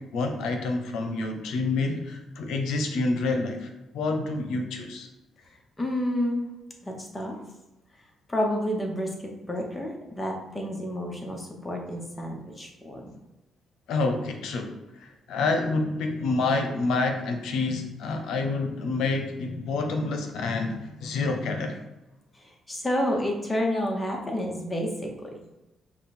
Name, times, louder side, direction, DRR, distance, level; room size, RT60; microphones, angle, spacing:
voice 1, 0.0-5.1 13.9-21.8, left 3 dB, 80° left, 4 dB, 0.7 m, -28 dB
voice 2, 5.8-6.5 6.8-7.4 8.3-13.1 22.3-25.3, equal, 15° left, 1 dB, 1.1 m, -30 dB
5.3 x 2.4 x 4.2 m, 1.0 s
cardioid pair, 90°, 0 cm